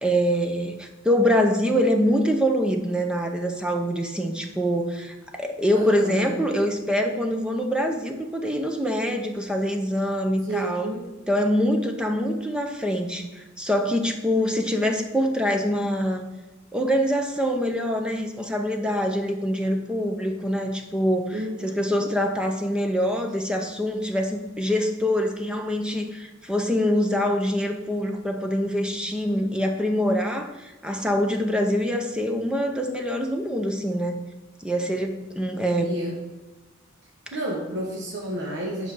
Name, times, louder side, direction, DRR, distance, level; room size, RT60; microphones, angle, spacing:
voice 1, 0.0-10.9 11.3-16.3 16.7-34.2 34.6-35.9, equal, 5° right, 3 dB, 0.6 m, -24 dB
voice 2, 5.7-6.3 10.4-11.1 21.3-22.1 35.8-36.2 37.3-38.9, right 1 dB, 60° right, -2 dB, 1.2 m, -31 dB
8.1 x 5.5 x 4.7 m, 1.1 s
head